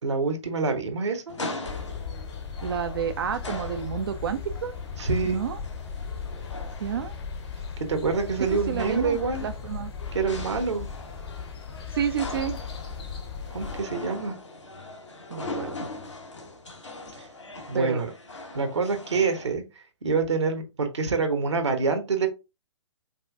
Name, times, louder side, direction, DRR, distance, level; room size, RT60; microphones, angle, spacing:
voice 1, 0.0-1.4 5.0-5.4 7.8-9.4 10.1-10.9 13.5-14.3 17.2-17.3 17.7-18.1 18.5-19.6 20.0-22.3, right 4 dB, 70° right, 1.1 m, -26 dB
sound 1, 1.3-19.5, left 2 dB, 75° left, 1.2 m, -41 dB
sound 2, 1.6-13.8, left 6 dB, 55° left, 1.0 m, -37 dB
voice 2, 2.6-4.7 5.3-5.6 6.8-7.1 8.5-9.9 11.9-12.6 15.3-15.9 17.7-18.0, right 8 dB, 55° right, 0.4 m, -30 dB
5.3 x 2.5 x 2.4 m
figure-of-eight pair, 120°, 15 cm